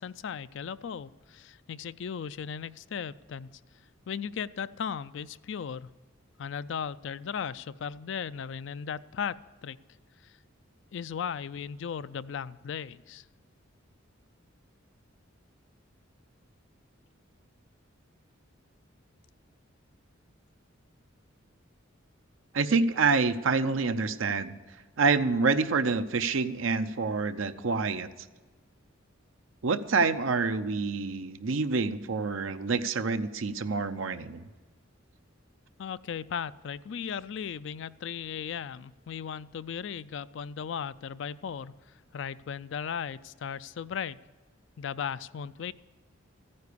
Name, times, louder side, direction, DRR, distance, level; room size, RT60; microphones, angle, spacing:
voice 1, 0.0-3.5 4.1-5.9 6.4-9.8 10.2-10.3 10.9-13.3 35.8-41.7 42.1-44.2 44.8-45.7, left 7 dB, 60° left, 15 dB, 0.4 m, -36 dB
voice 2, 22.5-24.6 25.0-28.1 29.6-34.4, right 4 dB, 75° right, 10 dB, 0.6 m, -27 dB
14.5 x 9.7 x 6.8 m, 1.3 s
head